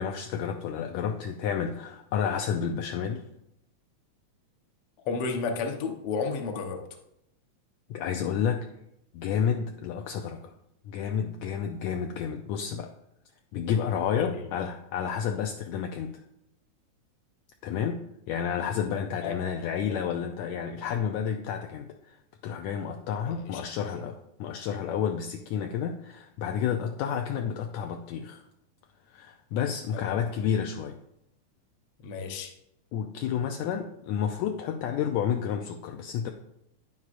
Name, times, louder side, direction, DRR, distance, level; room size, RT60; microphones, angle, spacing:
voice 1, 0.0-3.2 7.9-8.7 9.1-10.5 10.8-12.9 13.5-16.2 17.6-22.2 22.4-28.4 29.1-31.0 32.9-36.3, left 8 dB, 80° left, 4 dB, 1.8 m, -30 dB
voice 2, 5.0-6.8 14.1-14.4 19.2-19.3 19.9-20.0 23.2-23.7 29.9-30.2 32.0-32.5, left 4 dB, 60° left, 3 dB, 1.7 m, -32 dB
10.0 x 9.7 x 2.5 m, 0.79 s
omnidirectional pair, 3.4 m